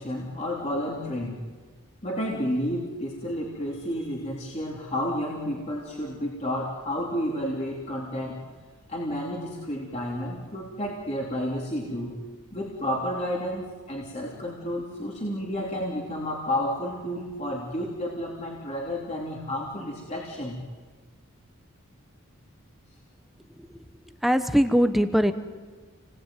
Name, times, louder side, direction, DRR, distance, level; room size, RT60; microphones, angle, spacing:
voice 1, 0.0-1.4 2.0-8.4 8.9-12.2 12.5-20.6, equal, 30° left, -2 dB, 3.4 m, -31 dB
voice 2, 24.2-25.3, equal, ahead, 9 dB, 1.1 m, -21 dB
29.5 x 20.0 x 9.3 m, 1.4 s
head